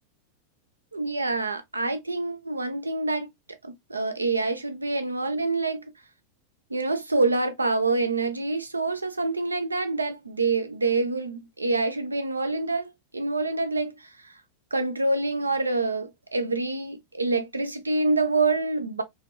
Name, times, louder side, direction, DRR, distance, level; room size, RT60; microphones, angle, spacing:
voice 1, 0.9-3.3 3.6-5.8 6.7-14.1 14.7-19.0, right 3 dB, 80° right, 0.4 m, -26 dB
2.5 x 2.1 x 2.2 m
figure-of-eight pair, 90°, 0 cm